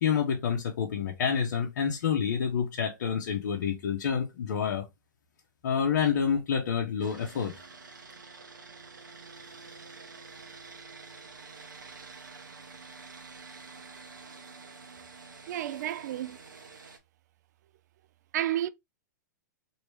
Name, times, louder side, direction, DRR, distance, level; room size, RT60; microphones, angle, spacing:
voice 1, 0.0-4.9 5.6-7.6, left 7 dB, 70° left, 0.7 m, -28 dB
sound 1, 7.0-17.0, right 4 dB, 90° right, 0.8 m, -48 dB
voice 2, 15.5-16.4 18.3-18.7, right 12 dB, 60° right, 0.4 m, -31 dB
3.0 x 2.7 x 3.2 m
hypercardioid pair, 115°, 10 cm